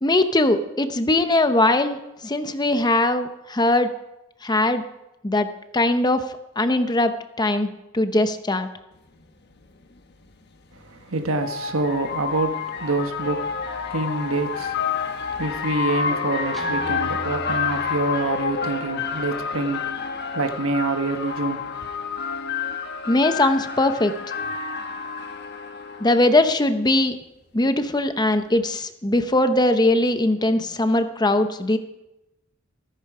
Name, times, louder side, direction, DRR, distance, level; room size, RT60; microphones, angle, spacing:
voice 1, 0.0-3.9 4.4-4.8 5.2-5.5 5.7-6.2 6.6-8.7 23.1-24.1 26.0-27.2 27.5-31.8, left 2 dB, 20° left, 0.8 m, -20 dB
sound 1, 9.2-9.3 10.7-26.3, left 5 dB, 55° left, 1.2 m, -29 dB
voice 2, 10.7-21.7, right 2 dB, 80° right, 1.4 m, -27 dB
Guitar, 16.5-18.6, equal, ahead, 1.7 m, -40 dB
14.5 x 14.0 x 4.9 m
head